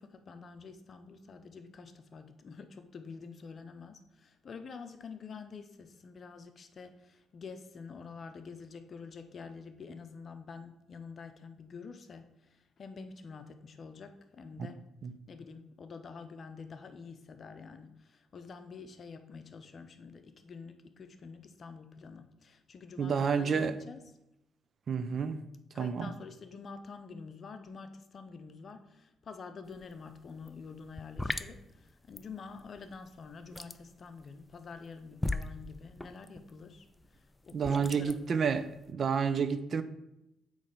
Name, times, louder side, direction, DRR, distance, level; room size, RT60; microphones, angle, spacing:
voice 1, 0.0-14.8 15.3-24.0 25.7-36.9 37.1-38.5, left 5 dB, 50° left, 0.6 m, -48 dB
voice 2, 23.0-23.7 24.9-25.4 25.8-26.1 37.5-39.8, right 6 dB, 50° right, 0.5 m, -30 dB
sound 1, 29.7-29.9 30.2-38.9, left 1 dB, 10° left, 0.3 m, -39 dB
8.2 x 3.2 x 5.2 m
cardioid pair, 90°, 0 cm